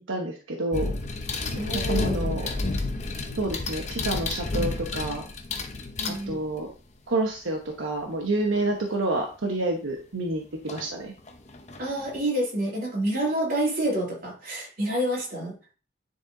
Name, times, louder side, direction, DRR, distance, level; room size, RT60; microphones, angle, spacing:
voice 1, 0.1-0.9 1.7-2.5 3.4-5.2 6.3-6.7 7.1-11.1, right 2 dB, 85° right, 1 dB, 1.1 m, -28 dB
sound 1, 0.7-6.7 9.2-9.3 10.7-10.9 11.3-12.2, left 3 dB, 35° left, 0.8 m, -30 dB
voice 2, 1.5-2.3 6.0-6.4 11.8-15.6, right 1 dB, 50° right, -3 dB, 2.9 m, -28 dB
9.4 x 4.2 x 3.9 m, 0.36 s
head